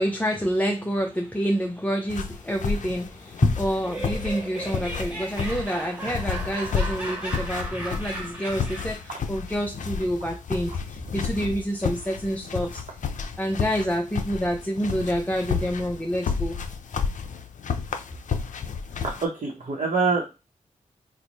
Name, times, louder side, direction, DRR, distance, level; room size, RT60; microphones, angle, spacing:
voice 1, 0.0-12.8 13.4-16.6, equal, 10° left, 0.5 m, -27 dB
sound 1, 2.1-19.3, left 6 dB, 65° left, 0.4 m, -31 dB
Laughter, 3.6-9.1, right 2 dB, 10° right, 1.8 m, -36 dB
voice 2, 19.0-20.3, right 4 dB, 60° right, 0.8 m, -25 dB
2.9 x 2.1 x 4.0 m
cardioid pair, 60°, 14 cm